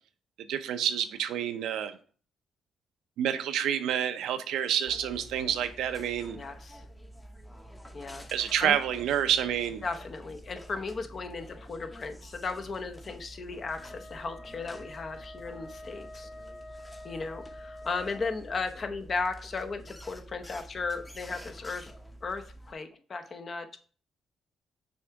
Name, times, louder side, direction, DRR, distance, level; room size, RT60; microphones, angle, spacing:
voice 1, 0.5-2.0 3.2-6.4 8.3-9.8, right 9 dB, 85° right, 0.6 m, -28 dB
sound 1, 4.9-22.7, equal, 10° left, 0.8 m, -48 dB
voice 2, 6.3-6.8 7.9-8.8 9.8-16.3 17.0-21.9 22.2-23.8, left 4 dB, 45° left, 0.8 m, -36 dB
Wind instrument woodwind instrument, 13.6-18.4, left 1 dB, 65° left, 1.4 m, -47 dB
6.4 x 3.5 x 4.7 m
cardioid pair, 90°, 0 cm